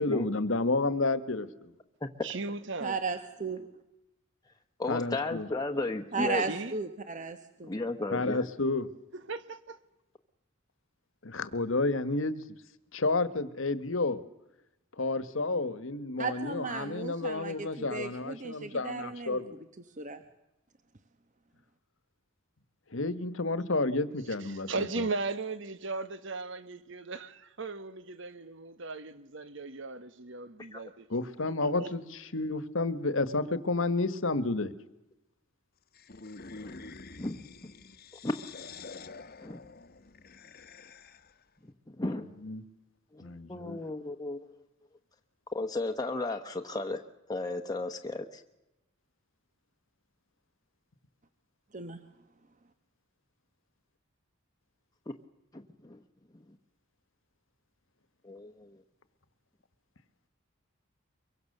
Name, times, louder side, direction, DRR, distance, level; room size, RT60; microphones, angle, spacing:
voice 1, 0.0-1.7 4.9-5.5 8.1-8.9 11.2-12.4 12.9-14.2 15.0-19.5 22.9-25.1 31.1-34.7 42.4-42.6 43.2-43.8, left 3 dB, 75° left, 1.5 m, -30 dB
voice 2, 2.2-3.0 6.5-6.8 9.1-9.8 24.5-31.1 31.6-31.9, right 3 dB, 65° right, 1.4 m, -37 dB
voice 3, 2.8-3.7 6.1-7.7 16.2-19.4 20.0-20.2 51.7-52.0, right 4 dB, 40° right, 1.2 m, -35 dB
voice 4, 4.8-6.4 7.6-8.4 30.7-30.8 36.6-36.8 37.2-37.4 38.2-38.5 39.4-39.6 41.9-42.3 43.1-44.5 45.5-47.0 47.3-48.4 55.5-56.0 58.2-58.8, left 2 dB, 20° left, 1.1 m, -34 dB
sound 1, 35.9-41.4, left 4 dB, 50° left, 1.1 m, -47 dB
24.0 x 23.0 x 6.7 m
head